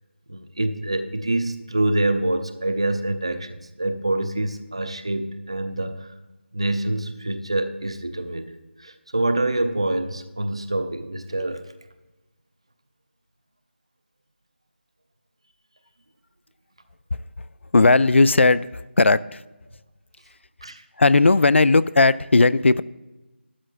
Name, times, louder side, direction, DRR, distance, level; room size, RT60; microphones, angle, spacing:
voice 1, 0.3-6.1 6.5-8.5 8.8-11.7 20.6-20.8, right 1 dB, 25° right, 0.5 m, -26 dB
voice 2, 17.7-19.4 21.0-22.8, left 3 dB, 75° left, 0.3 m, -17 dB
13.0 x 12.5 x 2.4 m
figure-of-eight pair, 180°, 6 cm